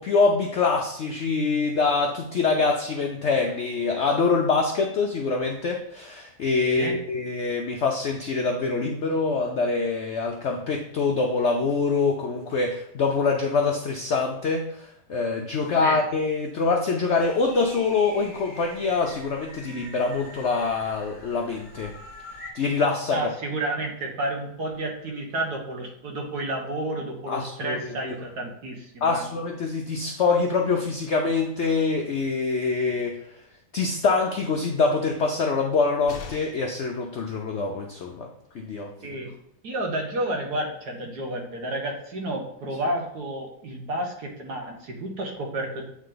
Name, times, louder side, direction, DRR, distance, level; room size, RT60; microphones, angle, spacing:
voice 1, 0.0-21.9 22.5-23.3 27.3-27.8 29.0-33.1 33.7-38.3 38.5-39.2, left 4 dB, 70° left, 2 dB, 0.6 m, -25 dB
sound 1, 17.2-22.5, left 1 dB, ahead, 1.6 m, -44 dB
voice 2, 23.1-29.2 39.0-39.3 39.6-45.8, right 1 dB, 70° right, 1 dB, 1.7 m, -31 dB
sound 2, 36.1-36.8 38.8-38.9 39.2-39.3, left 5 dB, 85° left, 1.6 m, -40 dB
8.5 x 3.3 x 3.8 m, 0.73 s
omnidirectional pair, 1.8 m